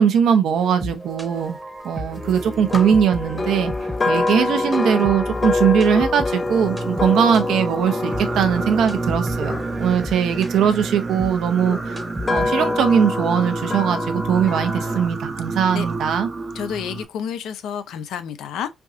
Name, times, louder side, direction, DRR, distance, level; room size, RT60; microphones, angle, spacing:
voice 1, 0.0-1.6 1.8-3.7 4.1-12.0 12.3-16.3, right 8 dB, 75° right, 0.8 m, -20 dB
sound 1, 0.6-12.8, equal, 15° right, 0.9 m, -34 dB
sound 2, 2.7-10.9 11.6-15.1, left 3 dB, 30° left, 0.3 m, -26 dB
Singing, 6.3-17.1, right 4 dB, 40° right, 0.7 m, -30 dB
voice 2, 16.5-18.7, left 8 dB, 80° left, 0.6 m, -30 dB
4.5 x 2.7 x 2.5 m
cardioid pair, 90°, 0 cm